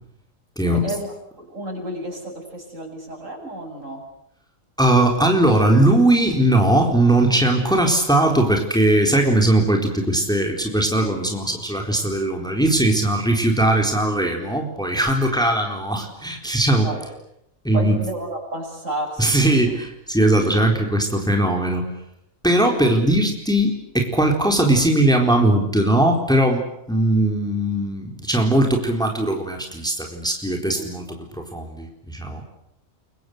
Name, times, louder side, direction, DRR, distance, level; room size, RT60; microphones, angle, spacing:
voice 1, 0.7-4.1 16.8-17.1 17.7-19.8 20.5-20.6 22.6-22.9 30.7-30.9, right 1 dB, 65° right, 2 dB, 8.5 m, -32 dB
voice 2, 4.8-16.9 17.6-18.0 19.2-21.8 22.4-31.2 31.5-32.4, right 1 dB, 5° left, 2 dB, 4.1 m, -19 dB
29.0 x 24.5 x 8.1 m, 0.76 s
omnidirectional pair, 1.4 m